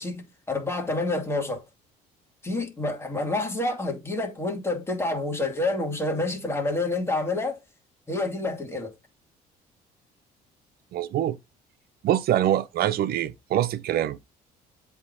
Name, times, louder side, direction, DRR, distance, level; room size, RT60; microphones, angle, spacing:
voice 1, 0.0-1.6 2.4-7.6 8.1-8.9, left 2 dB, 15° left, 2.2 m, -28 dB
voice 2, 10.9-11.4 12.0-14.2, right 11 dB, 65° right, 0.7 m, -24 dB
7.9 x 3.6 x 4.0 m
cardioid pair, 110°, 17 cm